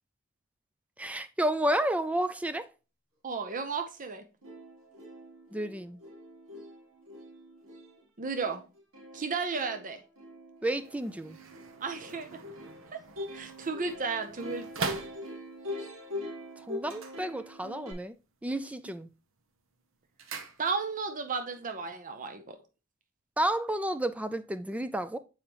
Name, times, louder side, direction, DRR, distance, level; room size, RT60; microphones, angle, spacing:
voice 1, 1.0-2.7 5.5-6.0 10.6-11.4 16.7-18.1 18.4-19.1 23.4-25.2, right 1 dB, 5° right, 0.3 m, -31 dB
voice 2, 3.2-4.2 8.2-8.6 9.1-10.0 11.8-12.3 12.9-13.0 13.3-14.9 20.6-22.6, right 4 dB, 40° right, 0.7 m, -34 dB
Plucked string instrument, 4.1-4.2 4.4-17.9, left 1 dB, 85° right, 2.0 m, -44 dB
sound 1, 10.7-15.7 16.8-17.9 18.2-18.7 19.1-21.1 21.4-21.5, right 4 dB, 70° right, 0.9 m, -42 dB
7.1 x 4.9 x 2.9 m
head